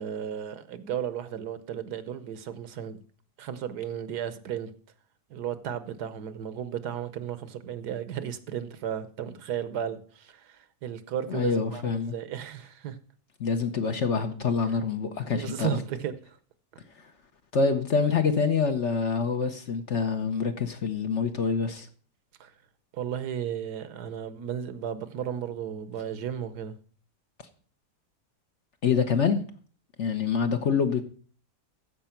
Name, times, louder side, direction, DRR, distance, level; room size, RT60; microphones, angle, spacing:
voice 1, 0.0-3.0 3.4-4.7 5.3-13.0 15.3-16.1 22.4-22.5 22.9-26.8, right 9 dB, 75° right, 1.4 m, -34 dB
voice 2, 11.3-12.2 13.4-15.7 17.5-21.9 28.8-29.4 30.0-31.0, left 5 dB, 50° left, 1.1 m, -26 dB
14.5 x 5.3 x 5.8 m
omnidirectional pair, 1.8 m